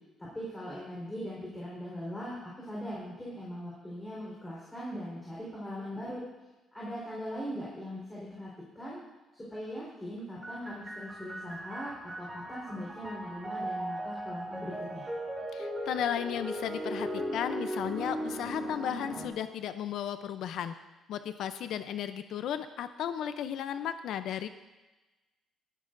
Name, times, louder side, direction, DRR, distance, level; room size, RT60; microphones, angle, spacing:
voice 1, 0.2-6.3 6.7-8.5 8.7-9.0 9.3-15.1, equal, 10° left, -6 dB, 4.1 m, -40 dB
sound 1, 10.4-19.3, equal, 10° right, 2.8 m, -37 dB
voice 2, 15.5-20.7 21.1-24.5, left 9 dB, 70° left, 10 dB, 0.5 m, -35 dB
20.5 x 11.0 x 2.6 m, 1.1 s
cardioid pair, 130°, 0 cm